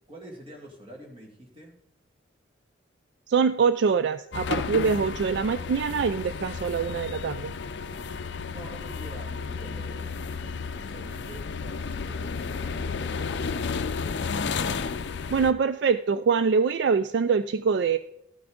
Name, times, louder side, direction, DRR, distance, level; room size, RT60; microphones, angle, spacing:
voice 1, 0.1-1.7 8.5-13.8, right 1 dB, 30° right, -1 dB, 2.1 m, -46 dB
voice 2, 3.3-7.5 15.3-18.0, right 5 dB, 60° right, 12 dB, 0.3 m, -24 dB
sound 1, 4.3-15.5, left 5 dB, 65° left, 0.5 m, -32 dB
13.0 x 6.0 x 3.7 m, 0.80 s
head